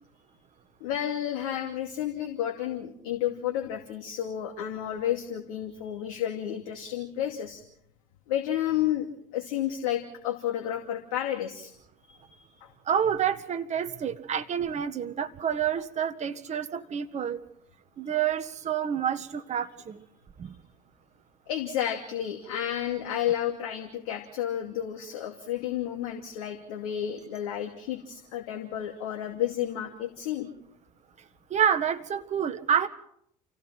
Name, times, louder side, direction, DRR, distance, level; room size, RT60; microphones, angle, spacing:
voice 1, 0.8-7.6 8.3-11.7 12.1-12.7 21.5-30.5, left 11 dB, 75° left, 3 dB, 2.6 m, -31 dB
voice 2, 12.8-17.4 18.0-20.0 20.4-20.5 31.5-32.9, right 8 dB, 40° right, 9 dB, 1.7 m, -28 dB
29.0 x 16.5 x 5.9 m, 0.70 s
hypercardioid pair, 70°, 18 cm